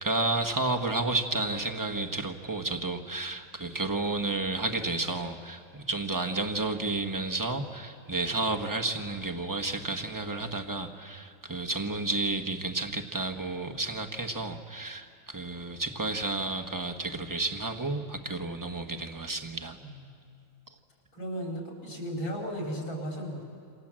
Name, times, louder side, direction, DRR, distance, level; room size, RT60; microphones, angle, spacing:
voice 1, 0.0-19.8, right 2 dB, 15° right, 4 dB, 0.9 m, -31 dB
voice 2, 21.1-23.4, equal, 70° left, -1 dB, 6.0 m, -35 dB
28.0 x 27.0 x 7.6 m, 2.3 s
omnidirectional pair, 2.2 m